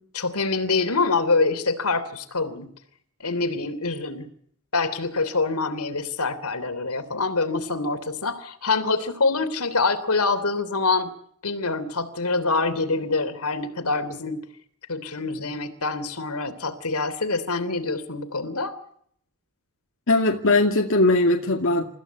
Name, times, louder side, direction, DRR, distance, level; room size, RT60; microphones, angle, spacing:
voice 1, 0.2-2.7 3.2-4.3 4.7-11.1 11.4-14.4 14.9-18.7, left 3 dB, 80° left, 11 dB, 3.3 m, -25 dB
voice 2, 20.1-21.9, left 2 dB, 65° left, 1 dB, 2.2 m, -19 dB
29.5 x 15.5 x 8.3 m, 0.65 s
head